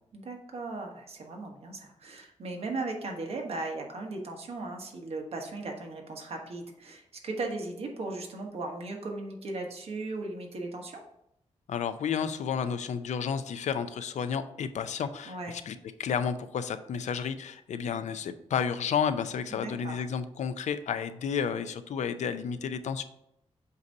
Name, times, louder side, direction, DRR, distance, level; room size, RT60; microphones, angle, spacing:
voice 1, 0.1-11.0 15.3-15.5 19.5-20.0, right 2 dB, 55° right, 2 dB, 1.2 m, -37 dB
voice 2, 11.7-15.7 16.0-23.0, left 7 dB, 75° left, 11 dB, 0.5 m, -31 dB
7.9 x 2.7 x 5.3 m, 0.79 s
wide cardioid pair, 145°, 12 cm